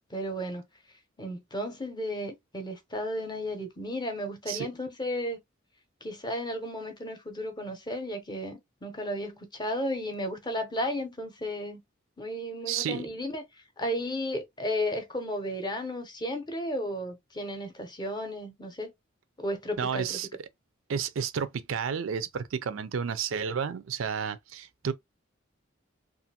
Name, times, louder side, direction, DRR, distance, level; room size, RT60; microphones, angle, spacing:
voice 1, 0.1-0.6 1.2-5.4 6.0-11.8 12.2-13.5 13.8-18.9 19.4-20.2, equal, 20° left, 0.6 m, -34 dB
voice 2, 12.7-13.1 19.8-20.5 20.9-24.9, right 7 dB, 80° right, 0.4 m, -31 dB
2.5 x 2.5 x 2.8 m
head